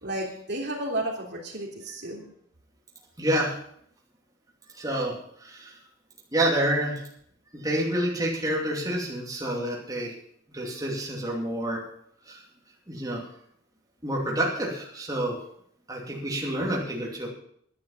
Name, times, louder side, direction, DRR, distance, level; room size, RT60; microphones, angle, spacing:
voice 1, 0.0-2.2, right 1 dB, 60° right, 0 dB, 3.3 m, -32 dB
voice 2, 3.2-3.5 4.8-5.1 5.4-5.8 6.3-7.0 7.5-10.1 10.5-11.8 12.3-12.4 12.9-13.2 14.0-15.4 15.9-17.3, right 1 dB, 20° right, -3 dB, 2.7 m, -28 dB
11.0 x 11.0 x 7.2 m, 0.67 s
head